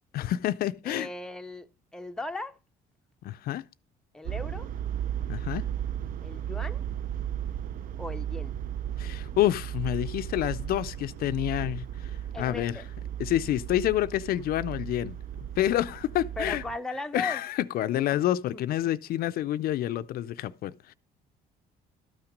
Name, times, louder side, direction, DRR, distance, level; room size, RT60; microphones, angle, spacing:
voice 1, 0.1-1.1 3.2-3.6 5.3-5.6 9.0-12.1 12.4-12.8 13.2-15.1 15.6-16.6 17.1-20.9, left 13 dB, 60° left, 0.4 m, -28 dB
voice 2, 0.8-2.6 4.1-4.7 6.2-6.8 8.0-8.6 12.3-12.8 16.4-17.4 17.9-18.0 18.5-18.9, left 2 dB, 5° left, 0.5 m, -37 dB
sound 1, 4.2-16.8, right 10 dB, 55° right, 0.5 m, -35 dB
12.5 x 5.8 x 5.1 m
cardioid pair, 110°, 17 cm